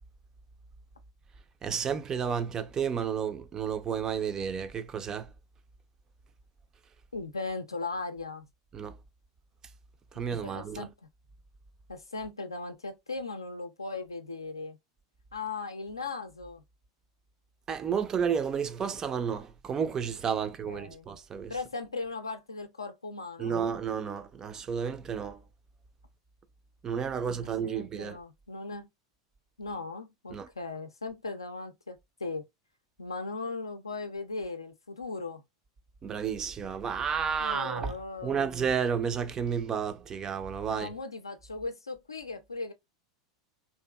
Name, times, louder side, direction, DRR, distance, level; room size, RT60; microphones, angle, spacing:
voice 1, 1.6-5.3 8.7-9.0 10.1-10.9 17.7-21.5 23.4-25.4 26.8-28.2 30.3-30.5 36.0-37.9 38.2-40.9, right 7 dB, 25° right, 0.3 m, -31 dB
voice 2, 7.1-8.5 10.4-10.9 11.9-14.8 15.3-16.6 20.4-21.1 21.5-23.6 27.1-27.3 27.6-28.9 29.6-32.5 33.0-35.4 37.4-38.5 40.6-42.7, left 3 dB, 85° left, 0.4 m, -38 dB
2.6 x 2.4 x 2.2 m
figure-of-eight pair, 85°, 2 cm